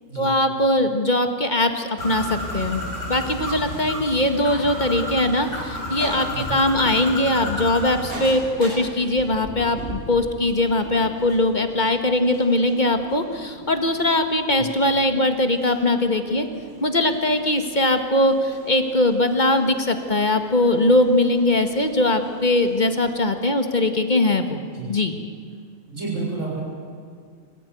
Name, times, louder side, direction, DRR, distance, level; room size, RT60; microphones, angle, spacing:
voice 1, 0.1-2.8 3.1-16.5 16.8-24.6 24.9-25.2, left 1 dB, 30° left, 7 dB, 1.7 m, -21 dB
Bird, 2.0-8.1, left 1 dB, 70° left, 6.4 m, -31 dB
Thunder, 6.0-15.8 16.1-17.2, equal, 5° left, 3.1 m, -41 dB
sound 1, 6.0-23.1, right 1 dB, 80° right, 8.7 m, -43 dB
voice 2, 25.9-26.6, right 4 dB, 55° right, -3 dB, 7.5 m, -30 dB
26.0 x 15.0 x 9.4 m, 2.1 s
omnidirectional pair, 1.5 m